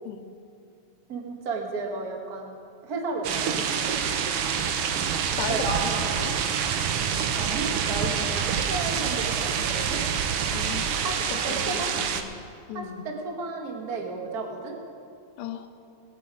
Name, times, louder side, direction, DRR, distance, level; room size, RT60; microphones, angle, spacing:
voice 1, 1.1-2.5 2.8-4.0 5.5-6.4 7.4-10.0 11.0-11.9 12.7-14.7, right 3 dB, 40° right, 0 dB, 1.6 m, -33 dB
sound 1, 3.2-12.2, right 7 dB, 90° right, 1.2 m, -27 dB
voice 2, 5.3-6.3 10.5-11.0 11.3-12.3 12.7-13.1 15.4-15.7, left 8 dB, 90° left, 7 dB, 2.4 m, -36 dB
21.0 x 8.8 x 4.9 m, 2.4 s
omnidirectional pair, 3.6 m